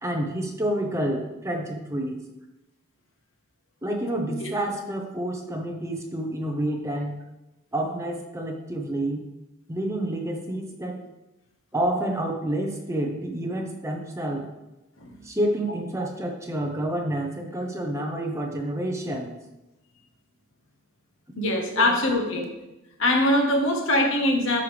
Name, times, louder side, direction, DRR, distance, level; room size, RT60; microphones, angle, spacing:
voice 1, 0.0-2.2 3.8-7.2 7.7-9.2 9.7-11.0 11.7-14.5 15.2-19.4 21.7-22.4, right 1 dB, 15° right, 1 dB, 0.9 m, -29 dB
voice 2, 21.4-22.5 23.0-24.6, left 1 dB, 60° left, 2 dB, 1.3 m, -22 dB
11.5 x 5.6 x 3.4 m, 0.99 s
head